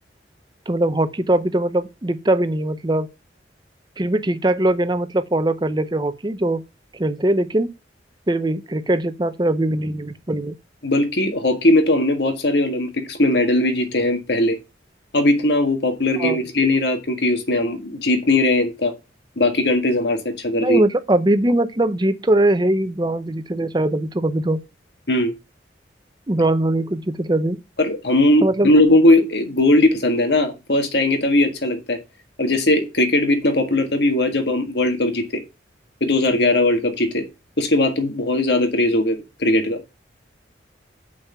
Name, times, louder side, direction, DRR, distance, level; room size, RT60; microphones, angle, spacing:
voice 1, 0.7-3.1 4.0-6.6 6.9-7.7 8.3-10.5 16.2-16.4 20.6-24.6 26.3-27.6 28.4-28.7, right 1 dB, 25° right, 0.7 m, -21 dB
voice 2, 10.8-14.6 15.1-18.9 19.4-20.8 25.1-25.3 27.8-32.0 32.4-35.4 36.0-37.2 37.6-39.8, left 1 dB, 70° left, 1.7 m, -19 dB
6.4 x 5.7 x 6.9 m
head